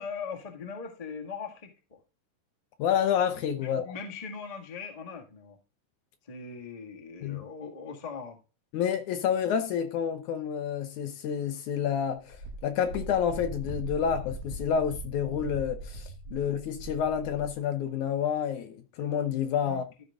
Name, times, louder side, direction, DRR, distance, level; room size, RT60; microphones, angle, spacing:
voice 1, 0.0-2.0 3.6-5.6 6.3-8.4 16.3-16.4 19.6-19.8, left 5 dB, 30° left, 0.7 m, -40 dB
voice 2, 2.8-3.9 7.2-7.5 8.7-12.4 12.6-19.9, left 8 dB, 70° left, 2.0 m, -29 dB
Wind, 12.3-17.6, right 2 dB, 55° right, 2.9 m, -40 dB
13.0 x 5.1 x 3.6 m
omnidirectional pair, 4.0 m